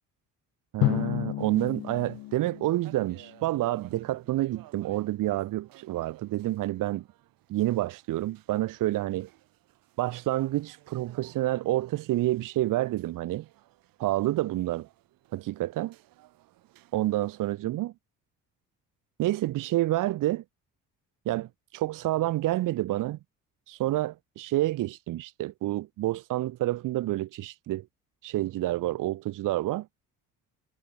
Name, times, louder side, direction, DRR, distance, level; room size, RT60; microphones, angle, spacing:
voice 1, 0.7-7.1 7.5-9.3 10.0-13.5 14.0-14.9 15.3-15.9 16.9-17.9 19.2-20.4 21.3-23.2 23.7-27.9 28.2-29.9, right 16 dB, 65° right, 0.9 m, -28 dB
Drum, 0.8-3.5, left 19 dB, 80° left, 1.3 m, -31 dB
sound 1, 1.4-17.5, right 16 dB, 80° right, 5.1 m, -59 dB
cardioid pair, 85°, 34 cm